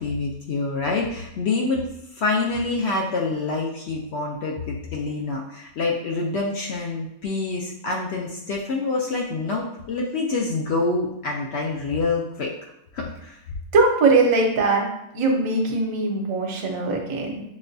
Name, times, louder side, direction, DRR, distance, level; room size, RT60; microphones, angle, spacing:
voice 1, 0.0-12.5 12.9-13.4, left 3 dB, 65° left, -1 dB, 0.7 m, -26 dB
voice 2, 13.7-14.8 15.1-17.4, right 3 dB, 75° right, 1 dB, 1.2 m, -21 dB
6.0 x 2.2 x 2.6 m, 0.80 s
omnidirectional pair, 1.5 m